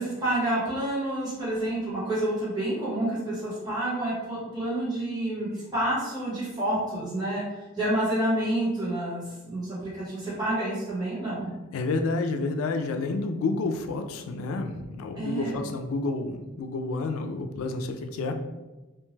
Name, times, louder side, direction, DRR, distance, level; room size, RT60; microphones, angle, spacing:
voice 1, 0.0-7.4 7.7-11.5 15.1-15.6, right 1 dB, 20° right, -9 dB, 1.2 m, -29 dB
voice 2, 11.7-18.4, left 3 dB, 85° left, 6 dB, 0.3 m, -29 dB
2.7 x 2.2 x 3.1 m, 1.1 s
head